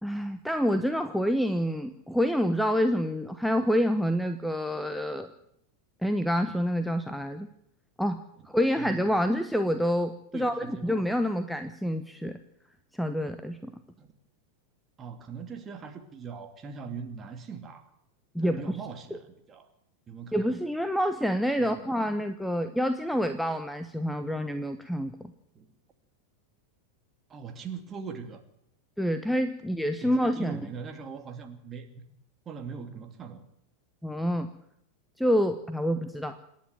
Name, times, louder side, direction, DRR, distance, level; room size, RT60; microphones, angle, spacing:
voice 1, 0.0-5.3 6.0-7.5 8.0-8.2 8.5-12.4 13.0-13.7 18.3-18.8 20.3-25.3 29.0-30.6 34.0-34.5 35.2-36.4, equal, ahead, 9 dB, 1.1 m, -27 dB
voice 2, 10.3-11.0 14.0-14.1 15.0-17.9 18.4-19.7 20.1-20.5 21.6-22.0 25.5-25.7 27.3-28.4 30.0-32.0 32.5-33.4, right 6 dB, 25° right, 6 dB, 2.8 m, -41 dB
27.5 x 10.5 x 9.1 m, 0.74 s
figure-of-eight pair, 90°, 0 cm